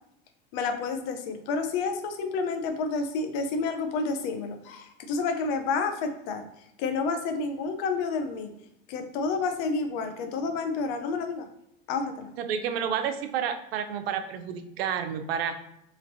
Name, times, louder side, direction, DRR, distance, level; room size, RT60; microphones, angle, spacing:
voice 1, 0.5-6.5 6.8-8.5 8.9-11.5 11.9-12.3, left 4 dB, 65° left, 7 dB, 0.6 m, -29 dB
voice 2, 12.4-15.6, right 8 dB, 85° right, 8 dB, 0.5 m, -30 dB
3.1 x 2.8 x 2.6 m, 0.81 s
supercardioid pair, 110°, 29 cm